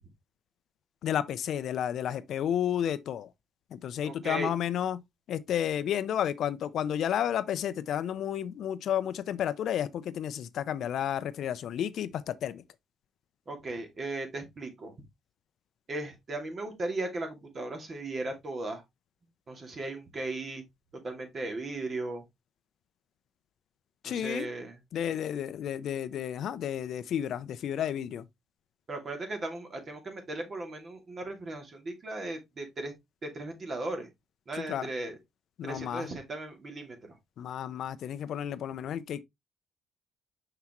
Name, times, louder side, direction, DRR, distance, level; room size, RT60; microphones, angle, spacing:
voice 1, 1.0-3.3 3.7-5.0 5.3-12.6 24.0-24.5 24.9-28.3 34.5-34.9 35.6-36.1 37.4-39.2, left 10 dB, 70° left, 0.5 m, -32 dB
voice 2, 4.0-4.5 13.5-14.9 15.9-18.8 19.5-20.6 21.0-22.2 24.0-24.8 28.9-32.9 33.2-34.1 34.5-35.2 35.6-37.0, right 2 dB, 40° right, 2.4 m, -37 dB
5.8 x 5.6 x 3.0 m
cardioid pair, 90°, 0 cm